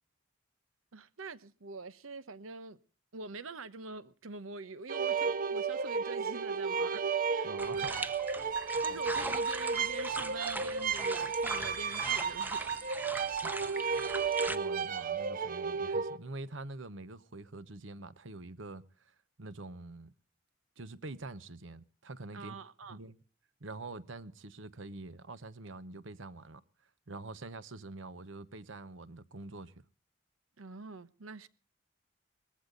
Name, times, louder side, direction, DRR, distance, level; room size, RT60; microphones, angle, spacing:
voice 1, 0.9-2.8 3.1-7.1 7.3-7.5 8.6-12.7 22.3-23.0 30.6-31.5, right 4 dB, 90° right, 1.0 m, -45 dB
sound 1, 4.9-16.2, right 5 dB, 45° right, 0.7 m, -33 dB
voice 2, 7.4-8.1 8.9-9.0 13.4-13.5 14.5-20.1 20.8-22.6 22.9-23.2 23.6-26.6 27.1-29.7, right 2 dB, 65° right, 1.0 m, -45 dB
sound 2, 7.6-14.6, right 2 dB, 10° right, 0.9 m, -40 dB
19.5 x 15.0 x 3.9 m
head